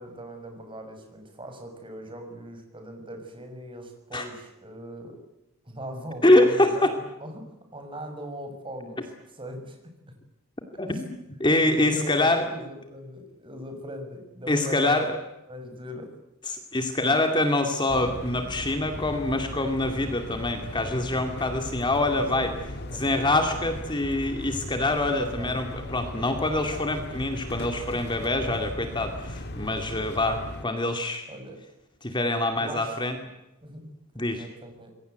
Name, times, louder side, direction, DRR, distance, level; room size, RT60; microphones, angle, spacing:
voice 1, 0.0-5.2 5.6-9.8 10.9-11.0 11.6-15.0 15.5-16.1 22.1-23.1 25.2-25.6 31.3-31.6 32.5-33.0 33.6-34.9, equal, 25° right, 5 dB, 6.5 m, -40 dB
voice 2, 6.2-7.0 10.8-11.1 11.4-12.4 14.5-15.2 16.5-22.5 22.9-31.2 32.0-33.2 34.2-34.4, left 2 dB, 20° left, 5 dB, 2.3 m, -25 dB
sound 1, 17.9-30.6, left 1 dB, 50° left, 2.2 m, -37 dB
27.0 x 22.5 x 8.1 m, 0.94 s
head